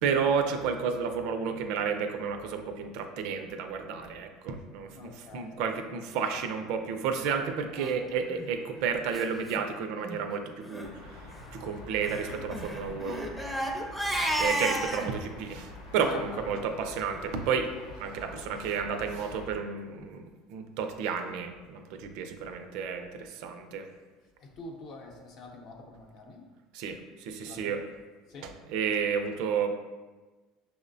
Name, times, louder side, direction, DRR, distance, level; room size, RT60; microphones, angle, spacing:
voice 1, 0.0-11.2 11.5-13.2 14.4-17.7 18.0-23.9 26.7-27.8 28.7-29.7, right 6 dB, 70° right, 6 dB, 0.4 m, -31 dB
voice 2, 4.9-5.6 7.8-8.2 16.0-16.8 24.4-26.5 27.5-27.8 28.3-28.5, left 3 dB, 55° left, 1 dB, 0.6 m, -45 dB
Crying sobbing, 8.2-8.5 9.1-9.2 9.5-9.6 9.9-10.2 10.6-10.9 12.0-15.1, right 1 dB, ahead, 0.4 m, -32 dB
sound 1, 10.8-19.6, left 2 dB, 90° left, 0.9 m, -46 dB
5.9 x 2.1 x 2.6 m, 1.3 s
supercardioid pair, 120°, 0 cm